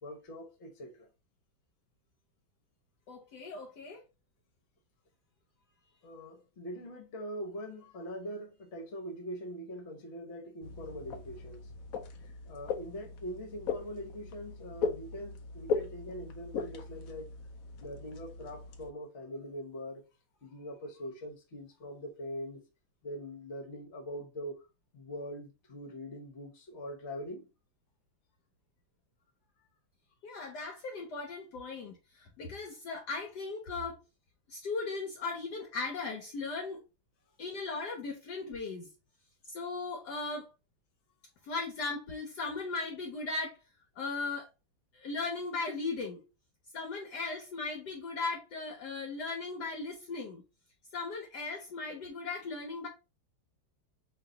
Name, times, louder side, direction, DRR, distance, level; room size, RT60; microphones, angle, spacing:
voice 1, 0.0-1.1 6.0-11.7 12.4-17.3 17.8-20.0 20.4-22.6 23.0-24.6 24.9-27.5, equal, 45° left, 1.1 m, -42 dB
voice 2, 3.1-4.0 30.2-34.0 34.5-36.8 37.4-38.9 39.5-40.5 41.4-43.6 43.9-44.5 44.9-46.2 46.7-50.4 50.9-52.9, left 3 dB, 65° left, 1.2 m, -37 dB
sound 1, 10.6-18.9, left 5 dB, 85° left, 0.7 m, -39 dB
3.1 x 2.8 x 3.7 m
omnidirectional pair, 2.2 m